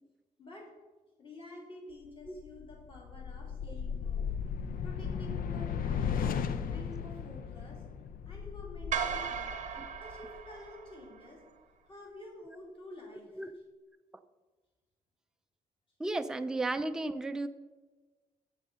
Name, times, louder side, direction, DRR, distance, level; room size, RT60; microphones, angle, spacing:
voice 1, 1.2-4.3 4.8-6.2 6.7-7.8 8.3-11.4 11.9-13.4, left 1 dB, 35° left, -2 dB, 2.8 m, -49 dB
sound 1, 2.2-10.7, left 7 dB, 75° left, 0.6 m, -36 dB
sound 2, 8.9-11.3, right 7 dB, 55° right, 0.7 m, -37 dB
voice 2, 16.0-17.5, right 2 dB, 5° right, 8 dB, 0.3 m, -33 dB
8.3 x 6.6 x 6.1 m, 1.3 s
wide cardioid pair, 165°, 15 cm